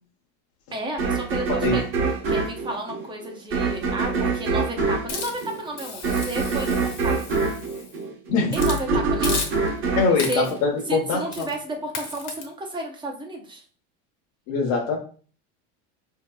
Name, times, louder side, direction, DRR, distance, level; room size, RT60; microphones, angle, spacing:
voice 1, 0.7-1.8 2.3-7.2 8.5-9.5 10.1-10.5 10.9-13.6, right 2 dB, 15° right, 1 dB, 0.6 m, -32 dB
sound 1, 1.0-11.2, right 4 dB, 35° right, 1.0 m, -25 dB
Hiss, 5.1-8.0 8.5-8.8 9.2-9.8 10.2-10.7 11.3-11.6 11.9-12.4, left 5 dB, 75° left, 1.1 m, -34 dB
voice 2, 10.0-11.5 14.5-15.0, left 4 dB, 55° left, -1 dB, 0.8 m, -23 dB
4.5 x 2.8 x 2.2 m, 0.41 s
cardioid pair, 150°, 35 cm